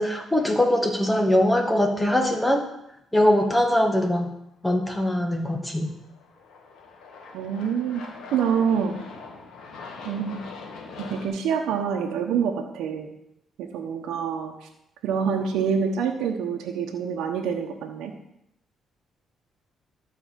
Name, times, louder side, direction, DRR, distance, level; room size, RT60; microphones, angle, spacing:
voice 1, 0.0-2.7 3.1-4.3 4.6-5.9, left 1 dB, 10° left, 4 dB, 1.9 m, -22 dB
Aircraft, 5.5-11.3, left 4 dB, 75° left, 2.1 m, -42 dB
voice 2, 7.3-8.0 8.3-9.0 10.0-10.4 11.0-13.1 13.6-14.5 15.0-18.1, right 7 dB, 85° right, 1 dB, 1.1 m, -26 dB
12.5 x 4.9 x 7.5 m, 0.80 s
cardioid pair, 90°, 0 cm